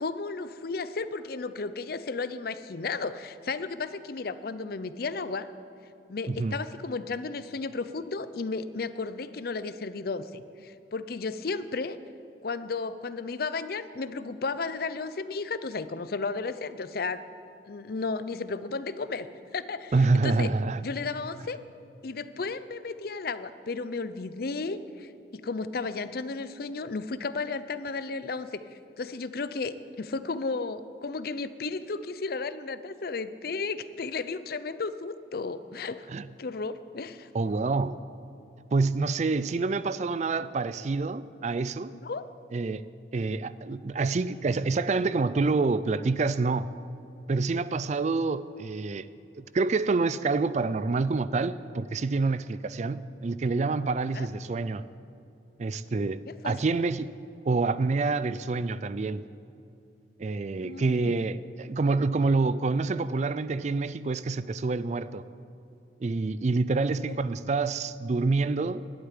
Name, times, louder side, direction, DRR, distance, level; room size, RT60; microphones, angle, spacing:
voice 1, 0.0-5.5 6.1-12.0 12.4-17.2 17.7-19.3 19.5-20.5 20.8-21.6 22.0-28.6 29.0-36.1 36.4-37.3 42.0-42.3 54.1-54.3 56.3-56.6 60.6-61.1 67.1-67.2, left 4 dB, 55° left, 0.5 m, -34 dB
voice 2, 19.9-20.8 36.1-36.3 37.3-38.0 38.7-41.9 42.5-42.8 43.1-46.7 47.3-49.1 49.3-54.8 55.6-57.1 57.4-59.2 60.2-65.2 66.0-68.8, right 3 dB, 40° right, 0.4 m, -27 dB
11.5 x 8.9 x 9.5 m
head